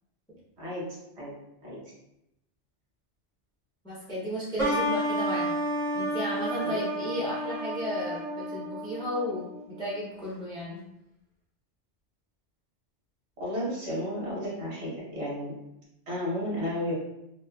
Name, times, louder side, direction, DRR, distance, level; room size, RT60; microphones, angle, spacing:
voice 1, 3.8-5.5 5.9-10.8, equal, 5° left, -6 dB, 0.4 m, -34 dB
sound 1, 4.6-10.0, equal, 45° right, 0.6 m, -31 dB
voice 2, 4.6-5.0 6.6-6.8 13.4-15.5 16.1-16.9, equal, 65° right, -7 dB, 1.3 m, -33 dB
2.9 x 2.0 x 2.2 m, 0.85 s
omnidirectional pair, 1.2 m